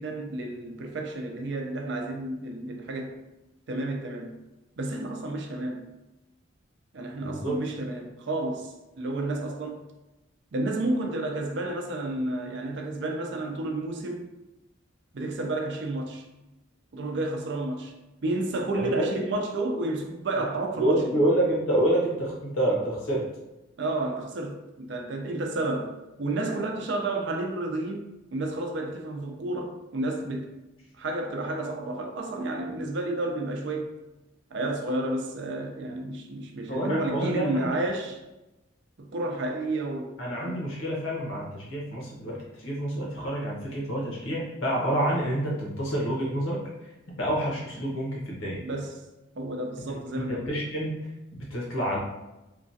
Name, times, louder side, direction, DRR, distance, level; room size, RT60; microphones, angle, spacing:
voice 1, 0.0-3.2 3.7-4.3 4.8-5.8 6.9-9.8 10.5-14.3 15.1-16.2 16.9-17.9 18.2-21.2 23.8-30.5 31.0-33.9 34.5-38.2 39.0-40.6 48.6-49.0 49.4-50.5, right 2 dB, 60° right, 0.4 m, -31 dB
voice 2, 7.2-7.6 18.9-19.0 20.8-23.3 36.7-37.8 40.2-46.6 47.1-48.6 49.9-51.0 51.5-52.0, right 1 dB, 85° left, 1.0 m, -28 dB
2.9 x 2.3 x 2.6 m
head